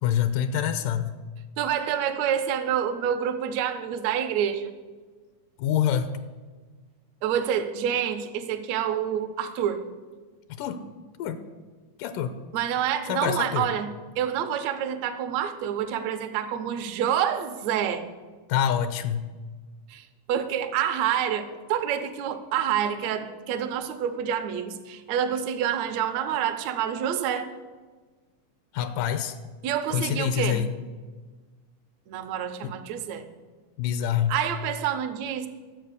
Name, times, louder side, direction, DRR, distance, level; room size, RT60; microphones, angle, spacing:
voice 1, 0.0-1.1 5.6-6.1 10.5-10.8 11.2-11.4 12.0-12.3 13.1-13.7 18.5-19.3 28.7-29.4 29.9-30.7 32.6-32.7 33.8-34.3, left 9 dB, 85° left, 11 dB, 2.2 m, -26 dB
voice 2, 1.6-4.7 7.2-9.8 12.5-13.9 14.2-18.1 19.9-27.5 29.6-30.6 32.1-33.3 34.3-35.5, right 9 dB, 70° right, 8 dB, 1.8 m, -27 dB
11.5 x 7.7 x 6.6 m, 1.4 s
omnidirectional pair, 3.8 m